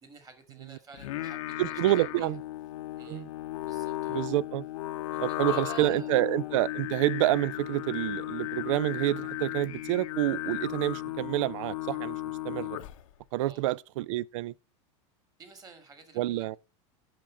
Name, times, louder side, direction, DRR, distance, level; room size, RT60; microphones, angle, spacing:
voice 1, 0.0-2.4 3.0-3.3 3.7-4.2 5.1-6.1 13.4-13.7 15.4-16.6, right 4 dB, 20° right, 2.1 m, -50 dB
Singing, 0.9-13.1, left 15 dB, 80° left, 0.8 m, -35 dB
voice 2, 1.6-2.4 3.1-3.3 4.1-4.6 5.2-12.2 12.4-12.8 13.3-14.5 16.2-16.6, right 16 dB, 75° right, 0.4 m, -28 dB
7.4 x 5.9 x 6.4 m
supercardioid pair, 135°, 16 cm